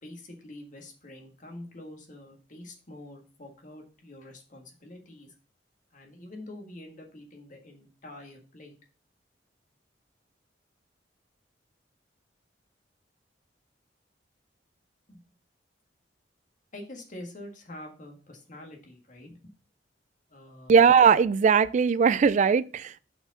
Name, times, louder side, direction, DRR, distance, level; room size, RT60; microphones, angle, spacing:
voice 1, 0.0-5.3 5.9-8.7 15.1-15.2 16.7-19.5 20.3-20.8, left 1 dB, 45° left, 1.6 m, -46 dB
voice 2, 20.7-23.0, right 6 dB, 40° right, 0.3 m, -19 dB
5.6 x 4.6 x 5.6 m
head